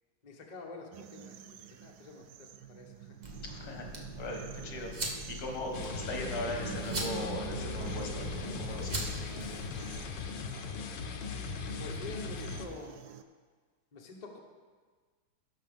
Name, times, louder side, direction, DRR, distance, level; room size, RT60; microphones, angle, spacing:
voice 1, 0.2-3.2 11.8-13.0 13.9-14.4, left 3 dB, 35° left, 0 dB, 0.7 m, -47 dB
sound 1, 0.9-13.2, right 10 dB, 75° right, 1.0 m, -46 dB
sound 2, 3.2-10.0, right 1 dB, 35° right, 0.7 m, -42 dB
voice 2, 3.4-3.9 4.2-4.9 5.3-9.2, left 2 dB, 85° left, 1 dB, 2.4 m, -39 dB
sound 3, 5.7-12.7, left 6 dB, 65° left, 1.4 m, -39 dB
17.0 x 6.0 x 3.6 m, 1.5 s
omnidirectional pair, 2.3 m